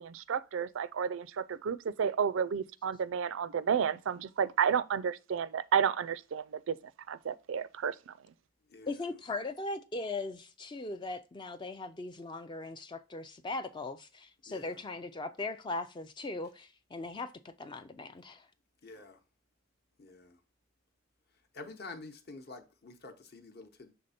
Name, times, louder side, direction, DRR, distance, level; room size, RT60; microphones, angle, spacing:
voice 1, 0.0-6.8 7.1-8.1, right 7 dB, 65° right, 0.4 m, -31 dB
voice 2, 8.9-18.5, left 2 dB, 20° left, 0.3 m, -39 dB
voice 3, 18.8-19.2 20.0-20.3 21.5-23.9, left 3 dB, 50° left, 0.9 m, -48 dB
6.6 x 3.4 x 4.1 m
head